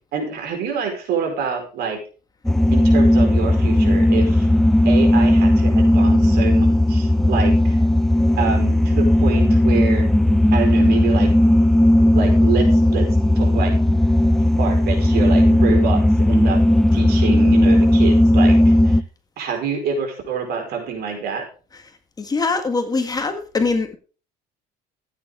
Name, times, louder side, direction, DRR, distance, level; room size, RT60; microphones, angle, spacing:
voice 1, 0.1-2.0 2.7-4.5 4.8-7.8 8.4-10.1 10.5-11.3 12.0-13.1 13.3-13.7 14.6-16.6 16.9-19.0 19.4-21.4, right 6 dB, 65° right, 3 dB, 4.7 m, -26 dB
sound 1, 2.4-19.0, left 1 dB, ahead, 0.5 m, -15 dB
voice 2, 22.2-24.0, left 3 dB, 20° left, 7 dB, 1.7 m, -22 dB
14.0 x 9.2 x 3.7 m, 0.36 s
cardioid pair, 125°, 18 cm